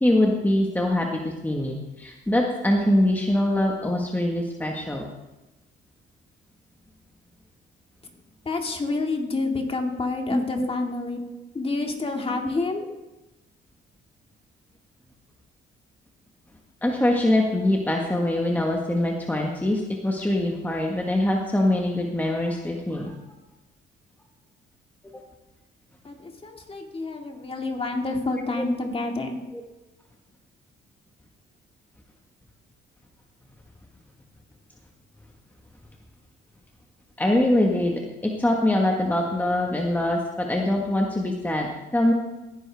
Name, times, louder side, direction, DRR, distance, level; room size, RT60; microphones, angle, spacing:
voice 1, 0.0-5.1 10.3-10.7 16.8-23.1 28.6-28.7 29.5-29.6 37.2-42.1, left 1 dB, 10° left, 0 dB, 1.4 m, -23 dB
voice 2, 8.5-11.2 11.5-12.8 26.0-29.4, left 3 dB, 30° left, 3 dB, 2.1 m, -28 dB
17.0 x 10.0 x 3.5 m, 1.0 s
cardioid pair, 90°, 20 cm